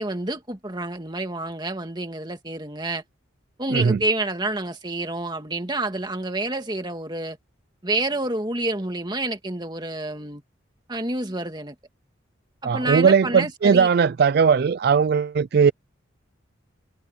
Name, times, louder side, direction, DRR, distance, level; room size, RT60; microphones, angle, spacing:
voice 1, 0.0-3.0 3.6-7.4 7.8-10.4 10.9-11.7 12.6-13.9, right 2 dB, 20° right, 2.1 m, -28 dB
voice 2, 12.6-15.7, right 6 dB, 50° right, 0.3 m, -18 dB
head